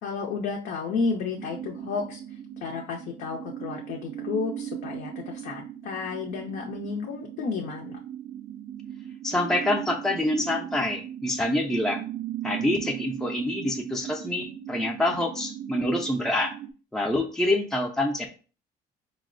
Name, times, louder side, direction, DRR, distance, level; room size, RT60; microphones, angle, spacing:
voice 1, 0.0-8.0, left 5 dB, 70° left, 0 dB, 0.5 m, -32 dB
sound 1, 1.4-16.7, right 11 dB, 65° right, 0.4 m, -38 dB
voice 2, 9.2-12.0 12.4-16.5 16.9-18.4, left 1 dB, 5° left, 2 dB, 0.4 m, -26 dB
4.2 x 2.0 x 2.4 m, 0.37 s
cardioid pair, 110°, 17 cm